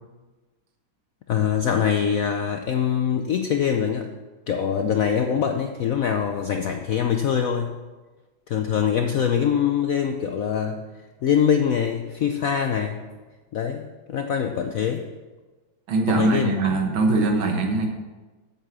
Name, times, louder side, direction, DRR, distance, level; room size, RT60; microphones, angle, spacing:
voice 1, 1.3-4.1 4.5-7.8 8.5-10.8 11.2-13.0 13.5-15.0 16.1-16.5, left 8 dB, 75° left, 5 dB, 0.7 m, -23 dB
voice 2, 15.9-17.9, right 3 dB, 75° right, 3 dB, 2.1 m, -22 dB
8.4 x 7.3 x 7.3 m, 1.3 s
omnidirectional pair, 2.2 m